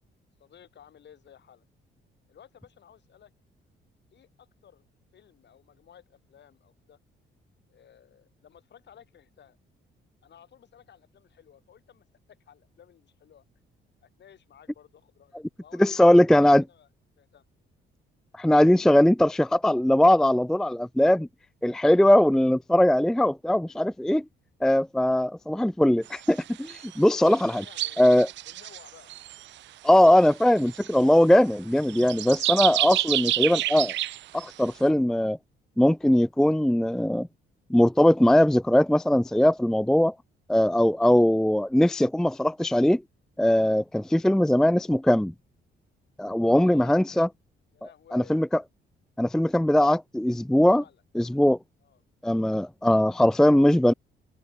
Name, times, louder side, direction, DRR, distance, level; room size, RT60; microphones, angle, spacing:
voice 1, 0.4-1.6 2.3-3.3 4.1-4.9 5.1-7.0 7.7-9.6 10.2-13.4 14.0-16.9 17.2-17.4 27.4-28.2 28.4-29.1 46.5-47.0 47.7-48.4 50.7-51.0 51.8-52.0, left 9 dB, 60° left, 6.5 m, -55 dB
voice 2, 15.8-16.6 18.4-21.3 21.6-24.2 24.6-27.6 28.0-28.3 29.8-33.9 34.3-35.4 35.8-37.3 37.7-40.1 40.5-43.0 43.4-45.3 46.2-47.3 48.1-48.5 49.2-50.8 51.2-51.6 52.2-53.9, left 1 dB, 5° left, 0.4 m, -20 dB
sound 1, 26.1-26.3 26.6-26.9 27.3-29.5 29.9-31.0 31.8-34.5, right 14 dB, 65° right, 0.4 m, -29 dB
open air
cardioid pair, 90°, 20 cm